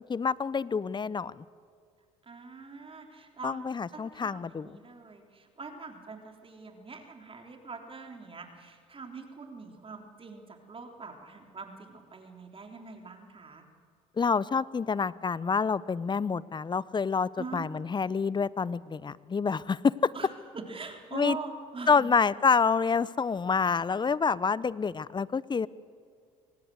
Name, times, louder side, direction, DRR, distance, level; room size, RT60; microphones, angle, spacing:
voice 1, 0.1-1.4 3.4-4.8 14.2-20.1 21.1-21.4 21.9-25.7, left 5 dB, 25° left, 20 dB, 0.7 m, -27 dB
voice 2, 2.3-3.6 3.9-13.6 17.4-17.8 20.1-20.3 20.5-22.1, right 4 dB, 35° right, 4 dB, 3.7 m, -43 dB
24.5 x 19.0 x 8.0 m, 2.2 s
hypercardioid pair, 65°, 17 cm